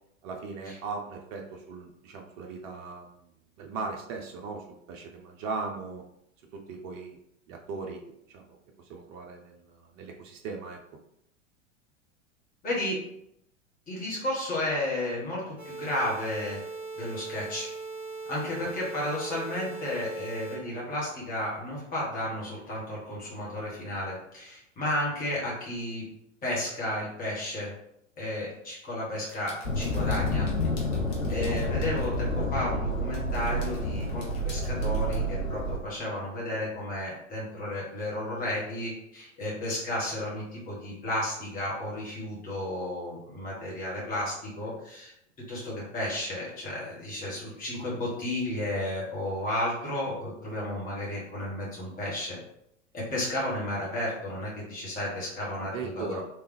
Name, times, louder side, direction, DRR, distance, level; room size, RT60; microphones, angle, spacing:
voice 1, 0.2-3.3 3.6-6.0 6.5-7.2 7.5-8.0 8.3-10.8 31.5-31.8 55.6-56.2, right 4 dB, 30° right, 1 dB, 0.5 m, -38 dB
voice 2, 12.6-13.0 13.9-16.6 17.0-17.7 18.3-26.1 26.4-27.7 28.2-30.5 31.3-45.1 45.5-52.4 52.9-56.2, left 1 dB, 20° left, -5 dB, 1.5 m, -33 dB
sound 1, 15.6-20.6, right 3 dB, 5° right, 1.2 m, -39 dB
sound 2, 29.3-32.3 32.9-35.2, left 2 dB, 55° left, 1.2 m, -51 dB
sound 3, 29.6-35.8, equal, 85° left, 0.9 m, -29 dB
3.4 x 3.1 x 3.3 m, 0.76 s
figure-of-eight pair, 90°, 38 cm